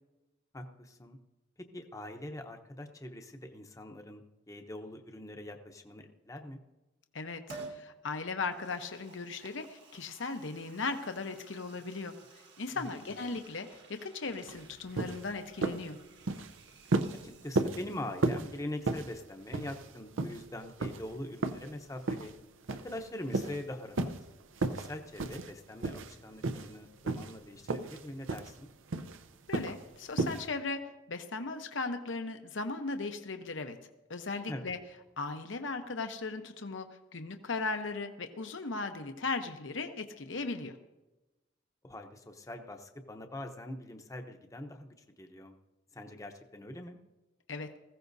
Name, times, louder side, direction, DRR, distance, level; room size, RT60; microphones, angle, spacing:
voice 1, 0.5-1.2 1.7-6.6 12.7-13.1 17.2-22.3 22.7-24.1 24.7-28.7 34.5-34.7 41.8-45.6 45.9-47.0, left 1 dB, 15° left, 5 dB, 0.8 m, -43 dB
voice 2, 7.1-12.1 12.6-16.0 29.5-30.8 31.1-33.8 34.1-34.8 35.2-36.9 37.1-40.7 47.5-47.7, left 3 dB, 70° left, 6 dB, 0.9 m, -37 dB
Liquid, 7.5-7.8 8.4-18.1 18.4-18.5, right 3 dB, 60° right, 1.6 m, -53 dB
sound 1, 14.5-14.6 15.0-15.2 15.6-15.9 16.2-16.5 16.9-17.2 17.6-17.8 18.2-18.5 18.9-19.1 19.5-19.9 20.2-20.4 20.8-21.0 21.4-21.7 22.1-22.3 22.7-23.0 23.3-23.6 24.0-24.2 24.6-24.9 25.2-25.5 25.8-26.1 26.4-26.7 27.1-27.4 27.7-28.0 28.3-28.5 28.9-29.2 29.5-29.8 30.2-30.4, right 2 dB, 80° right, 0.7 m, -32 dB
20.0 x 15.5 x 2.7 m, 1.1 s
head